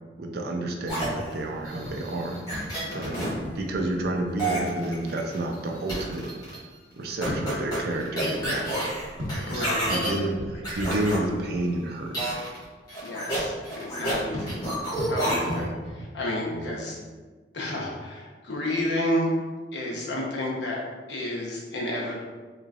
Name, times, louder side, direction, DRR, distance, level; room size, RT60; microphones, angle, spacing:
voice 1, 0.2-2.4 2.9-3.2 3.6-6.3 6.9-9.0 9.3-9.7 9.9-12.4 14.3-14.7 15.4-15.7 16.5-16.7, right 1 dB, 60° right, 2 dB, 0.5 m, -30 dB
sound 1, 0.9-3.3 4.4-5.5 5.9-6.6 7.2-10.1 10.6-11.2 12.1-12.6 12.9-14.2 14.5-15.6, right 1 dB, 20° left, 1.5 m, -30 dB
sound 2, 0.9-4.8 7.1-12.0 14.3-16.7, equal, 75° right, 1.3 m, -39 dB
voice 2, 2.8-3.2 9.4-9.9 13.0-14.6 15.1-15.7 16.0-17.0 17.5-19.3 19.7-20.8 21.1-22.2, left 1 dB, 75° left, -3 dB, 0.9 m, -31 dB
3.8 x 3.1 x 2.4 m, 1.4 s
head